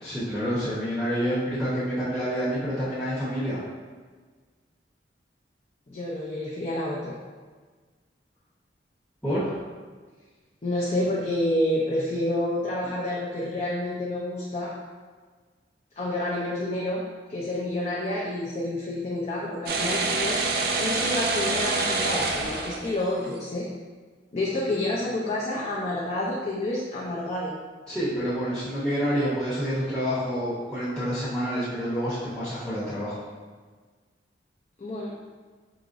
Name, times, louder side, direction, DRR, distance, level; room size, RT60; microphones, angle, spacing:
voice 1, 0.0-3.6 9.2-9.6 27.9-33.2, equal, 5° left, -11 dB, 0.8 m, -28 dB
voice 2, 5.9-7.2 10.6-14.7 16.0-17.0 17.3-20.4 20.8-23.7 24.3-27.5 34.8-35.1, left 1 dB, 35° left, -5 dB, 0.5 m, -29 dB
sound 1, 19.7-23.3, right 3 dB, 55° right, 0.4 m, -26 dB
4.8 x 2.9 x 2.5 m, 1.5 s
head